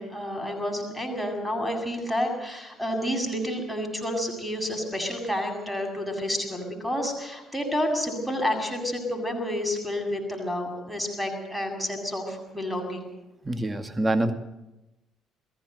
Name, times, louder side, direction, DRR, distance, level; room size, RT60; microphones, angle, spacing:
voice 1, 0.0-13.0, equal, ahead, 1 dB, 7.7 m, -30 dB
voice 2, 13.5-14.3, right 1 dB, 15° right, 8 dB, 2.3 m, -25 dB
21.5 x 16.5 x 8.2 m, 0.94 s
figure-of-eight pair, 50°, 0 cm